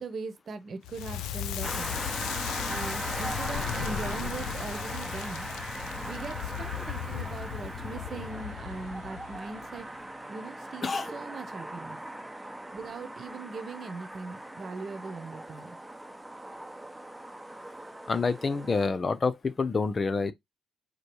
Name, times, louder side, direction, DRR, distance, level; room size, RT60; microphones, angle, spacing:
voice 1, 0.0-1.9 2.6-5.5 6.0-9.9 10.3-12.0 12.7-15.8, right 4 dB, 50° right, 1.1 m, -40 dB
Crackle, 0.8-9.8, left 11 dB, 90° left, 0.5 m, -36 dB
sound 1, 1.6-18.9, right 1 dB, 10° right, 1.0 m, -39 dB
voice 2, 18.1-20.3, left 4 dB, 35° left, 0.8 m, -27 dB
5.0 x 2.2 x 4.7 m
cardioid pair, 90°, 0 cm